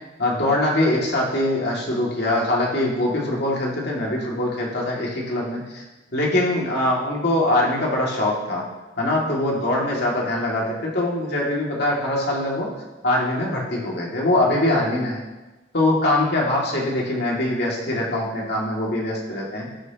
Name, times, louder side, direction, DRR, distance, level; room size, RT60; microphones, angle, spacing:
voice 1, 0.2-5.8 6.1-8.6 9.0-12.7 13.0-15.2 15.7-19.7, left 1 dB, 65° left, -3 dB, 2.6 m, -23 dB
18.0 x 6.5 x 3.1 m, 1.1 s
head